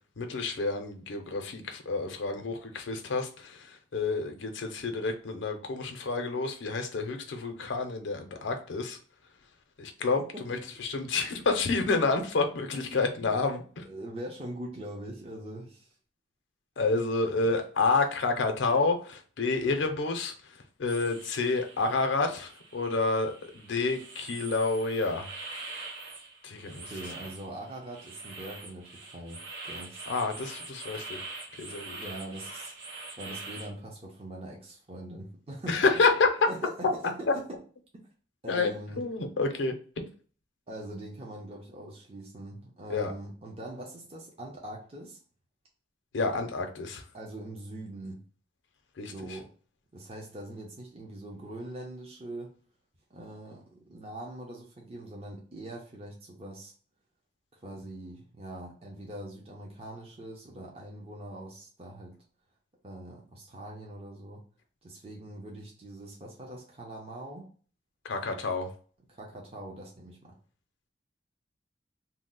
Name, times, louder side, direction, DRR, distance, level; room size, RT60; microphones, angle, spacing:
voice 1, 0.2-9.0 9.8-13.9 16.8-20.3 20.8-25.3 26.4-26.9 30.1-31.2 31.6-32.0 35.7-36.5 38.5-38.7 39.0-40.1 42.9-43.1 46.1-47.0 49.0-49.4 68.0-68.7, left 3 dB, 80° left, 5 dB, 0.5 m, -29 dB
voice 2, 13.2-13.6 13.8-15.9 26.7-30.0 31.7-36.0 36.4-37.6 38.4-39.0 40.7-45.2 47.1-48.2 49.1-49.5 49.9-52.5 53.1-56.7 57.6-62.1 62.8-64.4 64.8-67.5 69.1-70.3, right 1 dB, 30° right, -1 dB, 0.5 m, -42 dB
sound 1, 20.9-33.7, right 3 dB, 80° right, 0.8 m, -44 dB
2.7 x 2.0 x 3.7 m, 0.42 s
head